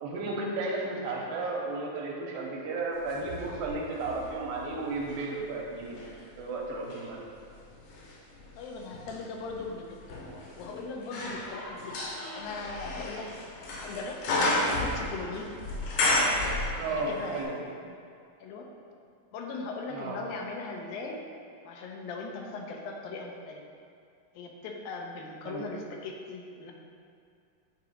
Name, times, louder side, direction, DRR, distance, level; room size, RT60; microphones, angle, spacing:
voice 1, 0.0-6.0 6.4-7.2 16.8-17.6 19.9-20.2 25.5-25.7, right 3 dB, 80° right, -2 dB, 2.6 m, -33 dB
sound 1, 3.0-5.2 5.8-17.1 17.4-17.5, left 2 dB, 70° left, 2.3 m, -33 dB
voice 2, 8.6-13.3 13.6-15.5 16.9-17.9 18.4-18.7 19.3-21.2 21.6-23.6 24.4-26.7, left 3 dB, 85° left, 1 dB, 2.5 m, -39 dB
8.2 x 3.8 x 4.9 m, 2.3 s
omnidirectional pair, 4.0 m